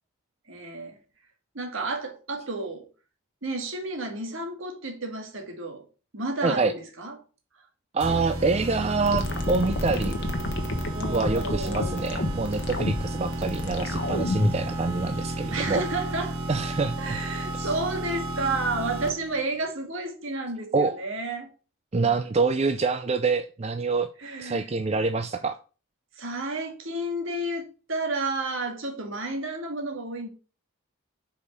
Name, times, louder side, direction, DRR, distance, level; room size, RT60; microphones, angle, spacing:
voice 1, 0.5-1.0 1.5-2.9 3.4-5.9 6.1-7.1 10.9-12.1 15.5-16.4 17.0-21.5 21.9-22.1 24.2-24.7 26.2-30.3, right 2 dB, 65° right, 1.9 m, -31 dB
voice 2, 6.4-6.7 7.9-10.2 11.1-15.8 16.5-17.2 17.6-17.7 20.7-21.0 21.9-24.1 24.4-25.6, right 4 dB, 30° right, 0.4 m, -26 dB
sound 1, 8.0-19.4, right 1 dB, 80° right, 1.7 m, -33 dB
sound 2, 9.0-14.6, left 2 dB, 55° left, 1.2 m, -29 dB
5.3 x 5.0 x 6.2 m
head